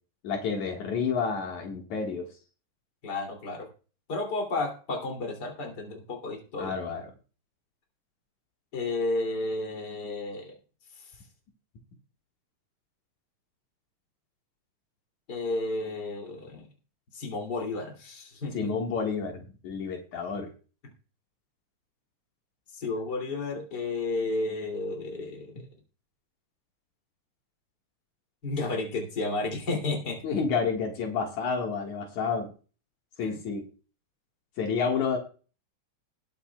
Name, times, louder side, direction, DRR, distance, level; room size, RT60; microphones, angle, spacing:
voice 1, 0.2-2.3 6.6-7.1 18.5-20.5 30.2-32.5 33.2-33.7 34.6-35.2, left 5 dB, 75° left, 1 dB, 3.0 m, -30 dB
voice 2, 3.0-3.7 4.1-6.8 8.7-10.6 15.3-16.7 17.1-18.7 22.7-25.6 28.4-30.2 33.2-33.3, left 2 dB, 35° left, 1 dB, 3.2 m, -32 dB
20.0 x 8.6 x 2.3 m, 0.36 s
omnidirectional pair, 3.4 m